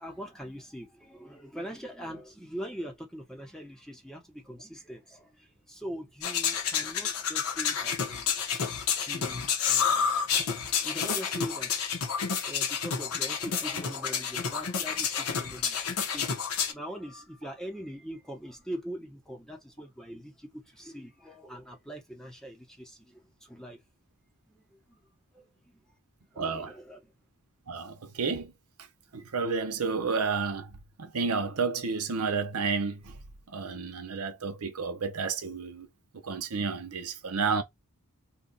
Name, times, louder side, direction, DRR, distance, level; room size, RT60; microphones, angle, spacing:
voice 1, 0.0-8.4 8.9-10.4 10.7-12.1 12.4-23.8 24.5-25.0 25.3-25.9 26.3-27.1, equal, 5° left, 0.8 m, -42 dB
sound 1, 6.2-16.7, left 7 dB, 75° left, 0.8 m, -29 dB
voice 2, 26.4-26.7 27.7-28.5 29.1-33.1 33.5-35.9 36.2-37.6, right 5 dB, 80° right, 0.7 m, -31 dB
2.8 x 2.3 x 3.9 m
head